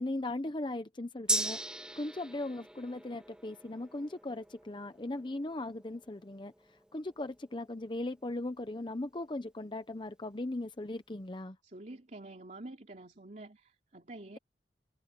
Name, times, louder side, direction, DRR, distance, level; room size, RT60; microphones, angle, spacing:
voice 1, 0.0-1.6 1.9-6.5 6.9-11.6, left 2 dB, 25° left, 0.8 m, -38 dB
Gong, 1.3-9.0 9.4-9.5, right 1 dB, 5° right, 1.8 m, -40 dB
voice 2, 11.6-14.4, right 2 dB, 45° right, 3.3 m, -48 dB
head